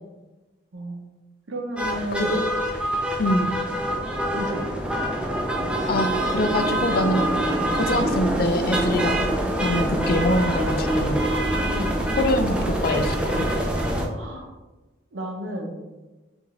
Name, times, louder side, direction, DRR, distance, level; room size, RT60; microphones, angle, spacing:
voice 1, 1.5-2.4 3.3-3.5 4.3-4.6 9.9-10.1 11.7-12.1 14.1-14.5 15.1-15.8, right 1 dB, 80° right, 2 dB, 0.8 m, -32 dB
sound 1, 1.8-14.1, right 1 dB, 5° right, 0.4 m, -25 dB
voice 2, 5.9-7.3 7.7-9.3 9.6-11.3 12.2-13.5, left 1 dB, 55° left, 6 dB, 0.4 m, -24 dB
5.9 x 2.6 x 3.2 m, 1.1 s
head